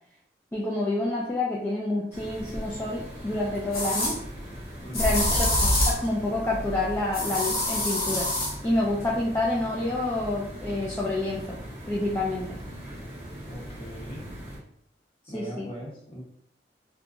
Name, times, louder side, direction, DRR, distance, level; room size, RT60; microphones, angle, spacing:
voice 1, 0.5-4.2 4.9-8.3 8.6-11.6 11.9-12.6 15.3-15.7, left 2 dB, 15° left, -5 dB, 0.3 m, -28 dB
sound 1, 2.1-14.6, equal, 10° right, 0.7 m, -40 dB
sound 2, 2.5-2.6 3.7-4.1 4.9-6.1 7.1-8.5, left 1 dB, 55° left, 0.9 m, -25 dB
voice 2, 4.8-5.4 13.5-14.3 15.3-16.2, equal, 30° left, -5 dB, 1.0 m, -40 dB
2.9 x 2.2 x 2.5 m, 0.71 s
head